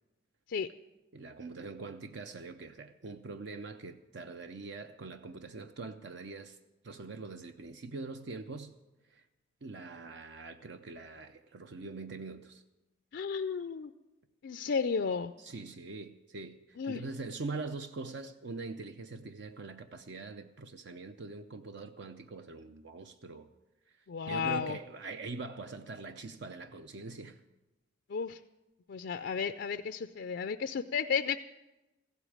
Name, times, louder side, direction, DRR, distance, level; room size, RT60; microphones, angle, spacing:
voice 1, 1.1-6.6 6.8-8.7 9.1-9.2 9.6-12.6 15.4-23.5 24.2-27.4, right 3 dB, 65° right, 0.6 m, -43 dB
voice 2, 13.1-13.9 14.4-15.3 16.8-17.0 24.1-24.8 28.1-28.4 28.9-31.4, left 6 dB, 60° left, 0.4 m, -33 dB
15.5 x 8.1 x 8.7 m
head